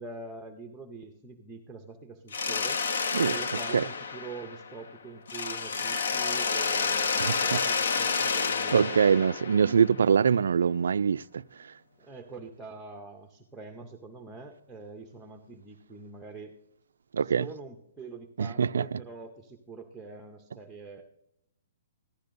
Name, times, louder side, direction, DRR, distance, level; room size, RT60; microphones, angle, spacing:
voice 1, 0.0-2.8 3.3-9.0 12.0-16.5 17.2-21.0, right 4 dB, 5° right, 0.6 m, -44 dB
Mechanisms, 2.3-4.9 5.3-10.1, left 5 dB, 65° left, 0.8 m, -30 dB
voice 2, 7.2-7.6 8.7-11.4 17.1-17.5 18.4-19.0, right 6 dB, 90° right, 0.3 m, -24 dB
15.0 x 12.0 x 2.6 m
hypercardioid pair, 175°, 0 cm